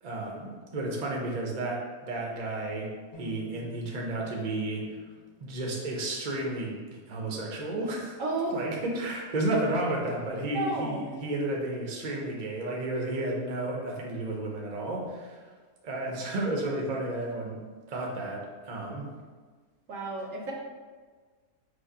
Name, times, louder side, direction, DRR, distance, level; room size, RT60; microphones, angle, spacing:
voice 1, 0.0-2.9 3.2-5.0 5.4-8.2 8.5-15.4 15.8-19.0, right 2 dB, 40° right, -1 dB, 0.6 m, -32 dB
sound 1, 3.1-7.1, left 3 dB, 70° left, 1.7 m, -51 dB
voice 2, 8.2-8.6 10.5-11.0 19.9-20.5, right 2 dB, 65° right, 0 dB, 1.0 m, -31 dB
5.2 x 2.1 x 4.7 m, 1.5 s
omnidirectional pair, 1.6 m